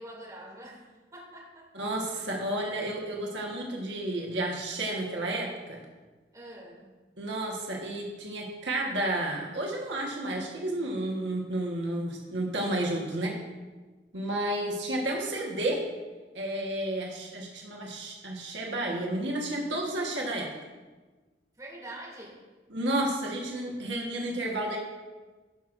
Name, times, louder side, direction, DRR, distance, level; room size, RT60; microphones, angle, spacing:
voice 1, 0.0-1.9 6.3-6.9 21.6-22.4, right 1 dB, 20° right, -5 dB, 2.7 m, -45 dB
voice 2, 1.7-5.8 7.2-13.4 14.1-15.8 16.3-20.5 22.7-24.8, right 1 dB, 85° right, -2 dB, 1.4 m, -31 dB
17.0 x 6.1 x 2.6 m, 1.3 s
head